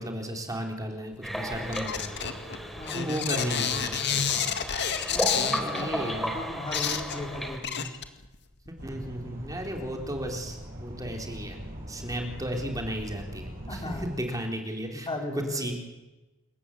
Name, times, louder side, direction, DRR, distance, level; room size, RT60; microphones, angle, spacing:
voice 1, 0.0-2.3 2.9-4.5 5.6-6.3 8.7-11.6 11.9-15.1 15.3-15.8, equal, 15° right, 2 dB, 3.8 m, -34 dB
sound 1, 1.2-7.6, equal, ahead, 4.2 m, -34 dB
sound 2, 1.5-5.8 6.4-6.5 6.7-8.3 8.7-8.8, left 7 dB, 55° left, 2.0 m, -29 dB
voice 2, 2.8-3.2 5.1-8.0 13.7-14.0 14.9-15.6, left 1 dB, 25° left, 2 dB, 4.6 m, -36 dB
sound 3, 8.8-14.2, equal, 45° right, 6.3 m, -41 dB
28.0 x 14.5 x 8.6 m, 1.0 s
head